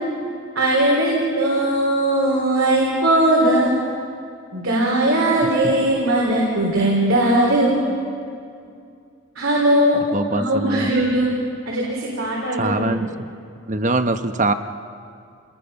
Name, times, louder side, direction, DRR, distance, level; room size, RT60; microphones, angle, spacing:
voice 1, 0.6-3.8 4.5-7.9 9.4-10.0 10.3-11.3 11.7-12.9, right 1 dB, 85° right, -4 dB, 3.7 m, -19 dB
voice 2, 10.1-10.9 12.5-13.1 13.7-14.5, right 2 dB, 35° right, 8 dB, 0.9 m, -22 dB
29.0 x 20.0 x 5.5 m, 2.4 s
head